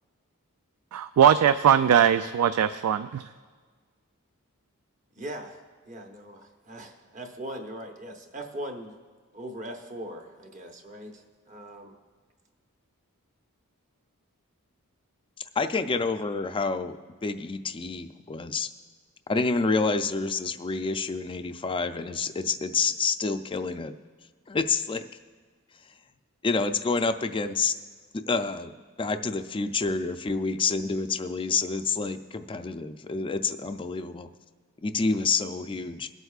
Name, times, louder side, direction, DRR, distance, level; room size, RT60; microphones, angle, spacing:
voice 1, 0.9-3.3, right 9 dB, 85° right, 11 dB, 0.3 m, -20 dB
voice 2, 5.1-9.0 9.3-11.9, right 1 dB, 35° right, 3 dB, 1.0 m, -40 dB
voice 3, 15.6-18.7 19.3-23.9 24.5-25.1 26.4-27.7 28.3-34.3 34.8-36.1, left 4 dB, 25° left, 9 dB, 0.4 m, -28 dB
23.0 x 8.0 x 2.4 m, 1.5 s
head